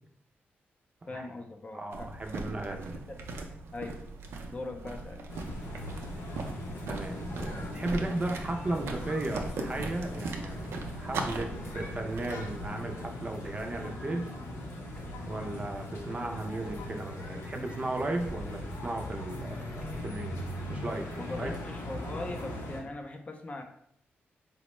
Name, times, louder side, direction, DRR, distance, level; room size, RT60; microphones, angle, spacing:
voice 1, 1.1-2.1 2.7-3.0 3.7-4.0 4.5-5.2 21.2-23.6, left 2 dB, 30° left, 4 dB, 0.4 m, -40 dB
voice 2, 1.7-2.9 6.9-11.5 11.7-14.3 15.3-20.4 20.7-21.5, right 2 dB, 30° right, 3 dB, 0.4 m, -35 dB
sound 1, 1.9-12.7, right 3 dB, 85° right, 0.4 m, -39 dB
sound 2, 5.3-22.8, left 1 dB, 90° left, 0.7 m, -40 dB
sound 3, 9.3-9.7 11.6-12.1 13.4-13.8 14.9-15.3 16.6-17.1 18.2-18.7 19.8-20.2, right 1 dB, 5° left, 0.8 m, -48 dB
4.2 x 2.1 x 3.0 m, 0.70 s
wide cardioid pair, 130°, 4 cm